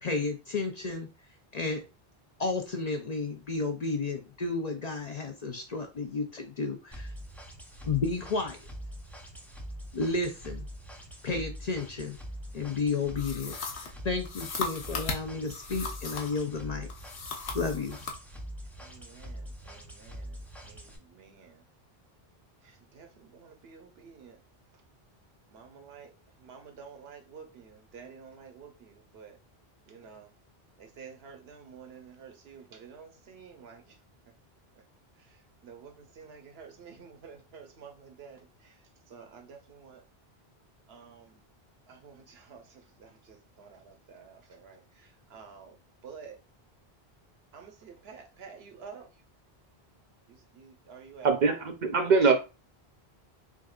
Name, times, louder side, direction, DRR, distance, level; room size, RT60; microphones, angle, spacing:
voice 1, 0.0-1.1 1.5-1.8 2.4-7.1 7.9-8.7 9.9-10.6 11.2-12.2 12.5-16.9 17.5-18.0, left 4 dB, 50° left, 0.5 m, -32 dB
sound 1, 6.9-21.0, equal, ahead, 0.4 m, -43 dB
sound 2, 13.2-16.5 16.9-18.2, left 4 dB, 90° left, 1.0 m, -37 dB
voice 2, 18.8-21.6 22.6-24.4 25.5-29.4 29.9-30.3 30.8-34.0 35.2-38.8 39.1-40.0 40.9-41.4 41.9-45.8 46.0-46.4 47.5-49.1 50.3-51.6, right 6 dB, 80° right, 0.9 m, -50 dB
voice 3, 51.2-52.3, right 5 dB, 50° right, 0.7 m, -23 dB
3.7 x 3.6 x 2.3 m
omnidirectional pair, 1.1 m